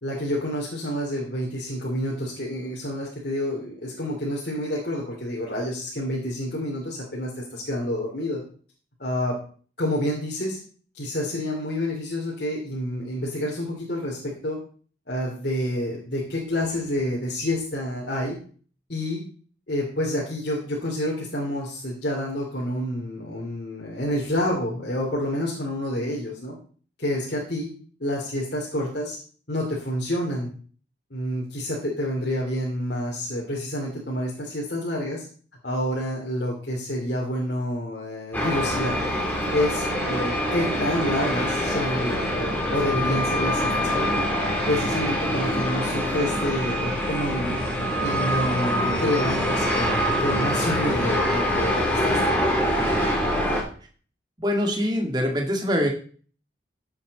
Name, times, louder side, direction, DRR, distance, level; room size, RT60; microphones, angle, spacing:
voice 1, 0.0-8.4 9.0-9.4 9.8-10.6 10.9-14.6 15.1-18.4 18.9-19.2 19.7-26.5 27.0-27.7 28.0-29.2 29.5-30.5 31.1-35.2 35.6-39.0 39.5-44.2 44.6-47.6 48.0-52.5, left 1 dB, 55° left, -3 dB, 2.8 m, -28 dB
sound 1, 38.3-53.6, equal, 10° left, 3.1 m, -24 dB
voice 2, 52.8-53.1 54.4-55.9, equal, 20° right, 1 dB, 2.2 m, -24 dB
13.5 x 7.9 x 4.1 m, 0.43 s
head